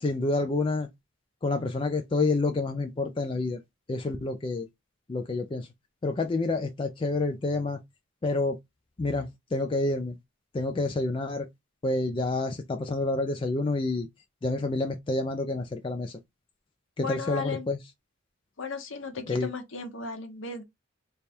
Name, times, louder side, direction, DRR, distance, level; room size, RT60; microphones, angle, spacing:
voice 1, 0.0-0.9 1.4-3.6 3.9-4.7 5.1-5.7 6.0-7.8 8.2-8.6 9.0-10.2 10.5-11.5 11.8-14.1 14.4-16.2 17.0-17.8 19.3-19.5, left 2 dB, 25° left, 0.3 m, -28 dB
voice 2, 17.0-17.7 18.6-20.6, left 4 dB, 65° left, 0.9 m, -35 dB
3.3 x 2.2 x 4.2 m
head